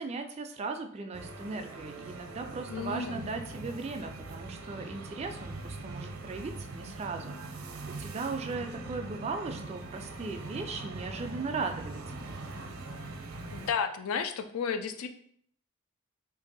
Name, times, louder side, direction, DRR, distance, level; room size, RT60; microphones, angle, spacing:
voice 1, 0.0-12.4, right 4 dB, 30° right, 6 dB, 0.3 m, -38 dB
sound 1, 1.1-13.7, right 2 dB, 70° right, 0.6 m, -42 dB
voice 2, 2.7-3.3 13.5-15.1, left 6 dB, 80° left, 8 dB, 0.4 m, -32 dB
2.8 x 2.6 x 3.9 m, 0.63 s
head